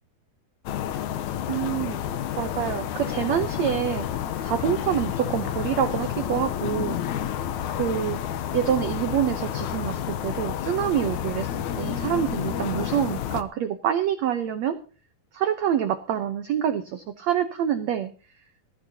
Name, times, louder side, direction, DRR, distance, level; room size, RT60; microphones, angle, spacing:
sound 1, 0.7-13.4, left 10 dB, 70° left, 1.9 m, -30 dB
voice 1, 1.5-2.0 2.4-4.1 4.4-7.0 7.7-8.2 8.5-14.8 15.3-18.1, right 10 dB, 80° right, 8 dB, 1.6 m, -26 dB
21.0 x 13.5 x 2.8 m, 0.36 s
omnidirectional pair, 4.4 m